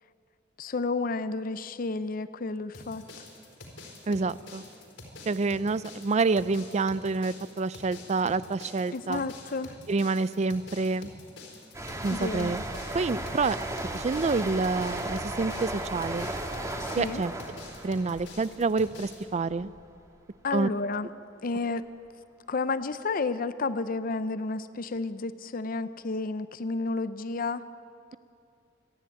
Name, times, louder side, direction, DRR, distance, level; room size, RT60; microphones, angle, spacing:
voice 1, 0.6-3.2 8.9-9.8 12.1-12.5 16.8-17.2 20.4-21.1 21.4-21.8 22.5-27.6, left 3 dB, 50° left, 13 dB, 0.6 m, -31 dB
sound 1, 2.7-19.2, left 2 dB, 75° left, 4.2 m, -47 dB
voice 2, 4.1-4.6 5.3-9.2 9.9-11.1 12.0-12.6 12.9-13.6 13.9-16.3 16.9-17.3 17.8-19.7 20.5-20.7, right 3 dB, 40° right, 17 dB, 0.4 m, -28 dB
sound 2, 11.7-19.2 19.5-19.8, right 1 dB, 15° right, 1.6 m, -35 dB
26.5 x 10.5 x 9.5 m, 2.4 s
head